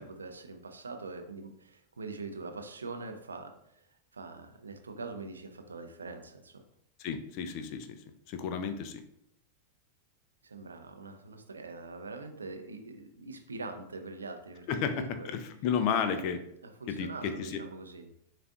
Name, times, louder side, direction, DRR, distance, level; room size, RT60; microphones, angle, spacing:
voice 1, 0.0-3.8 4.1-6.6 10.4-15.3 15.9-16.3 16.6-18.1, right 3 dB, 75° right, 6 dB, 0.5 m, -43 dB
voice 2, 7.0-8.0 8.3-9.0 14.7-16.4 16.9-17.6, left 7 dB, 45° left, 9 dB, 0.4 m, -32 dB
6.6 x 2.5 x 2.3 m, 0.75 s
figure-of-eight pair, 90°, 0 cm